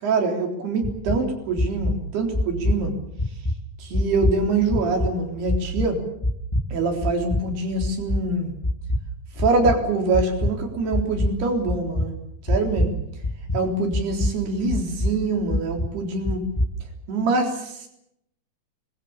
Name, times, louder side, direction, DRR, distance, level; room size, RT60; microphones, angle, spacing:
voice 1, 0.0-3.0 3.8-6.0 6.7-8.5 9.4-12.2 12.4-12.9 13.5-16.4 17.1-17.9, right 3 dB, 80° right, 4 dB, 5.8 m, -24 dB
sound 1, 0.8-1.2 1.6-2.0 2.3-2.8 3.2-3.6 3.9-4.4 4.7-5.1 5.5-5.9 6.2-6.6 7.0-7.4 7.8-8.2 8.6-9.0 9.4-9.8 10.1-10.5 10.9-11.3 11.7-12.1 12.5-13.0 13.2-13.7 13.9-14.3 14.7-15.1 15.5-15.9 16.2-16.7, left 1 dB, 15° left, 1.2 m, -23 dB
24.5 x 21.0 x 7.3 m, 0.77 s
omnidirectional pair, 4.6 m